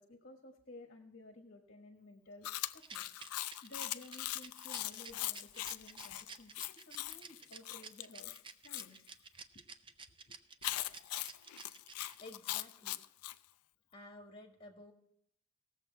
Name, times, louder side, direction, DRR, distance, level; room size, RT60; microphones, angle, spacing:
voice 1, 0.0-3.1 3.6-8.3 8.6-9.9 10.2-10.3, left 2 dB, 45° left, 4 dB, 1.3 m, -55 dB
Chewing mastication, 2.4-8.9 10.6-13.4, left 15 dB, 80° left, 0.4 m, -41 dB
Rattle, 2.8-12.4, right 5 dB, 20° right, 0.5 m, -52 dB
voice 2, 12.2-13.0 13.9-14.9, left 2 dB, 25° left, 2 dB, 1.7 m, -53 dB
18.5 x 7.4 x 4.5 m, 0.72 s
head